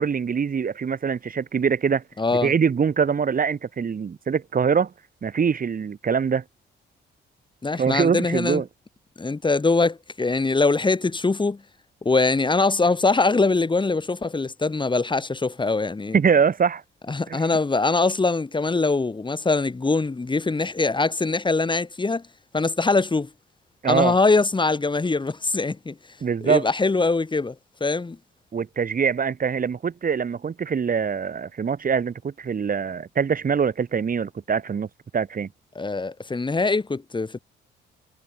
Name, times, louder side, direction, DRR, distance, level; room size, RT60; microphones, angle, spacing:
voice 1, 0.0-2.0 2.4-4.9 5.2-6.4 7.8-8.6 16.1-16.8 17.3-17.5 23.8-24.2 26.2-26.7 28.5-34.9 35.1-35.5, right 6 dB, 45° right, 7.5 m, -23 dB
voice 2, 2.2-2.5 7.6-8.6 9.2-11.6 12.0-16.2 17.1-22.2 22.5-23.3 23.9-25.9 26.4-27.5 27.8-28.2 35.7-37.4, left 3 dB, 25° left, 6.1 m, -22 dB
cardioid pair, 90°, 20 cm